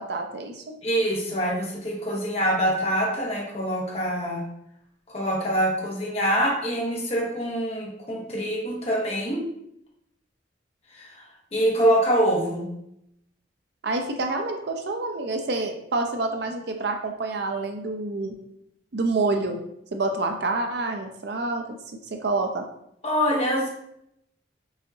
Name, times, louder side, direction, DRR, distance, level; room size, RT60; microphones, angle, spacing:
voice 1, 0.0-0.6 13.8-18.3 18.9-19.6 19.9-22.7, right 3 dB, 60° right, 4 dB, 0.5 m, -28 dB
voice 2, 0.8-4.4 5.1-9.4 10.9-11.2 11.5-12.7 23.0-23.7, equal, 35° left, -3 dB, 1.0 m, -25 dB
4.8 x 2.7 x 2.7 m, 0.77 s
head